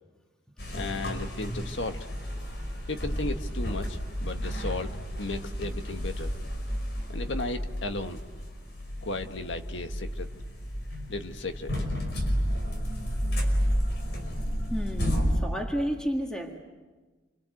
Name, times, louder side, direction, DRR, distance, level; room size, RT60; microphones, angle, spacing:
sound 1, 0.6-15.4, equal, 60° left, 5.3 m, -31 dB
voice 1, 0.7-2.1 2.9-6.3 7.1-8.2 9.0-10.3 11.1-11.7, left 2 dB, 80° left, 6 dB, 1.6 m, -35 dB
voice 2, 14.7-16.6, equal, 5° left, 1 dB, 1.8 m, -31 dB
29.0 x 25.5 x 8.0 m, 1.3 s
head